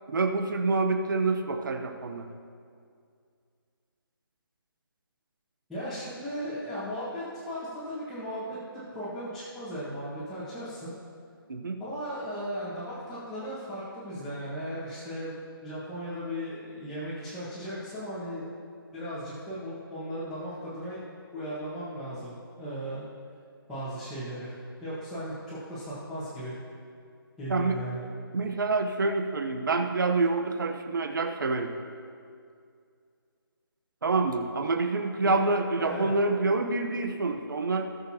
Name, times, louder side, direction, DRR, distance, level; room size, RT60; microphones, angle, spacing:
voice 1, 0.1-2.3 11.5-11.8 27.5-27.8 28.3-31.7 34.0-37.9, right 3 dB, 55° right, 5 dB, 1.0 m, -27 dB
voice 2, 5.7-10.9 11.8-18.5 18.9-21.0 21.3-23.0 23.7-24.5 24.8-26.5 27.4-28.0 35.2-35.4 35.8-36.1, equal, ahead, -18 dB, 1.5 m, -36 dB
18.5 x 6.7 x 2.9 m, 2.3 s
hypercardioid pair, 170°, 13 cm